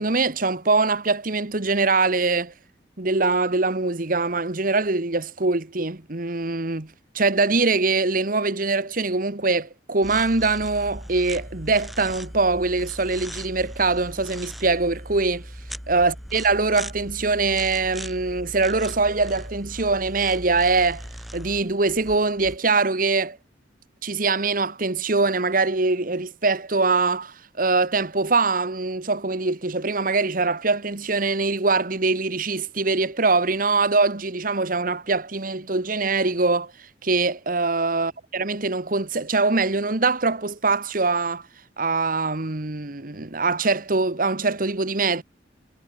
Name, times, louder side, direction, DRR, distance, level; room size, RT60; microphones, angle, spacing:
voice 1, 0.0-2.5 3.0-6.9 7.1-15.4 15.9-21.0 21.3-23.4 24.0-36.7 37.0-41.4 41.8-45.2, right 3 dB, 50° right, 1.5 m, -23 dB
sound 1, 10.0-22.6, equal, ahead, 0.9 m, -39 dB
head